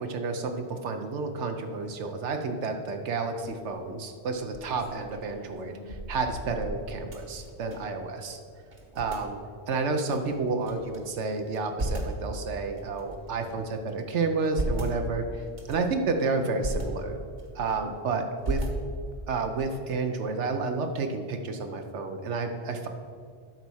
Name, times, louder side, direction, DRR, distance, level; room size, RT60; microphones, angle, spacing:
voice 1, 0.0-8.4 8.9-9.4 9.7-17.2 17.5-18.7 19.3-22.9, right 3 dB, 85° right, 5 dB, 1.0 m, -30 dB
sound 1, 4.6-8.0 8.3-8.4 8.7-9.3 9.9-11.0 11.4-12.2 12.8-13.7 14.2-14.9 15.5-15.9 16.4-16.8 17.3-18.0 18.4-19.2, right 1 dB, 55° right, 1.6 m, -35 dB
12.0 x 4.1 x 6.2 m, 2.1 s
omnidirectional pair, 1.2 m